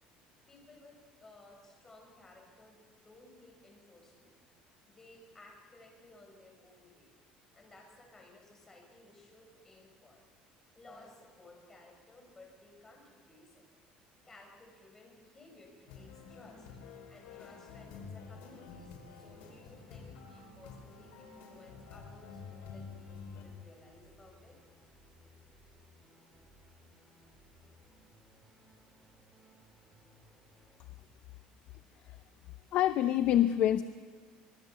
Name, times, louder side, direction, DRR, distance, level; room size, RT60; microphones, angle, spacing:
voice 1, 0.5-4.4 4.9-7.1 7.5-10.2 10.7-13.6 14.2-16.7 17.1-24.6, left 2 dB, 15° left, 1 dB, 6.6 m, -57 dB
sound 1, 15.9-23.4, left 5 dB, 80° left, 5.6 m, -49 dB
sound 2, 19.3-30.8, equal, 10° right, 4.2 m, -62 dB
voice 2, 32.7-33.8, left 11 dB, 50° left, 11 dB, 0.7 m, -26 dB
26.0 x 20.5 x 7.2 m, 1.5 s
cardioid pair, 155°, 3 cm